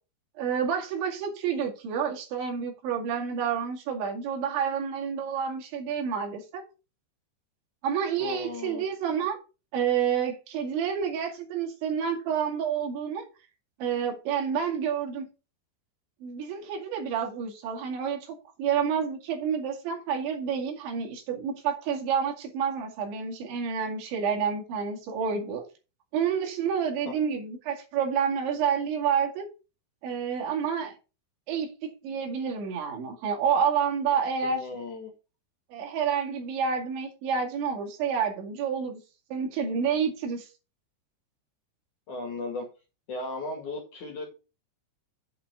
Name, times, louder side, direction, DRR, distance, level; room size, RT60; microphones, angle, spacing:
voice 1, 0.4-6.6 7.8-9.4 9.7-13.3 13.8-15.3 16.2-25.6 26.1-29.5 30.0-30.9 31.5-34.7 35.7-39.0 39.3-40.5, right 7 dB, 75° right, 4.5 m, -29 dB
voice 2, 8.2-8.8 27.1-27.2 34.5-35.1 42.1-42.7 43.1-44.3, left 2 dB, 50° left, 3.0 m, -36 dB
8.3 x 5.8 x 6.7 m
omnidirectional pair, 5.3 m